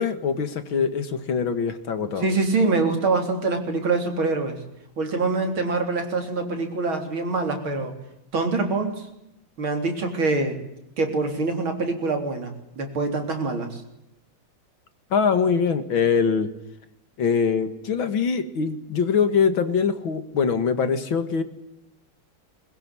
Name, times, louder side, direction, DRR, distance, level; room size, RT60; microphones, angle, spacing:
voice 1, 0.0-2.3 15.1-16.5 17.2-21.4, left 6 dB, 70° left, 10 dB, 2.6 m, -23 dB
voice 2, 2.0-4.6 5.0-7.9 8.3-9.1 9.6-10.6 11.0-13.8, right 3 dB, 75° right, 5 dB, 4.4 m, -25 dB
22.0 x 21.0 x 9.9 m, 0.83 s
omnidirectional pair, 2.3 m